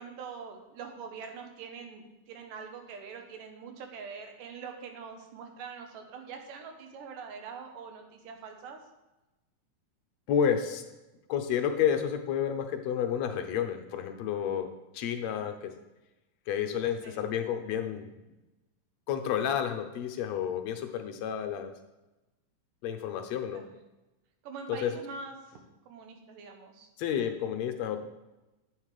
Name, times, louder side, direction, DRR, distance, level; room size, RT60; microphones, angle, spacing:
voice 1, 0.0-8.8 17.0-17.2 23.5-23.7 24.4-26.9, right 5 dB, 85° right, 4 dB, 2.7 m, -44 dB
voice 2, 10.3-10.8 11.3-14.7 14.9-15.7 16.5-18.1 19.1-21.7 22.8-23.6 24.7-24.9 27.0-28.0, left 8 dB, 75° left, 6 dB, 1.7 m, -30 dB
11.0 x 7.8 x 3.3 m, 1.0 s
omnidirectional pair, 3.7 m